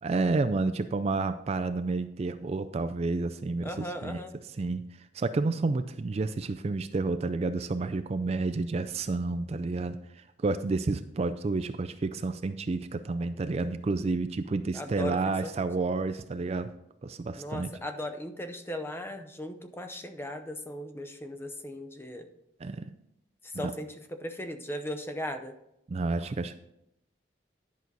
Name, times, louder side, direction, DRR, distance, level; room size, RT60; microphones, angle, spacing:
voice 1, 0.0-4.2 4.6-4.9 5.1-16.7 17.0-17.8 22.6-22.9 23.6-23.7 25.9-26.5, right 3 dB, 35° right, 9 dB, 0.3 m, -30 dB
voice 2, 3.6-4.3 14.7-15.7 17.4-22.3 23.4-25.5, left 1 dB, 15° left, 8 dB, 0.6 m, -38 dB
10.5 x 6.1 x 4.0 m, 0.81 s
head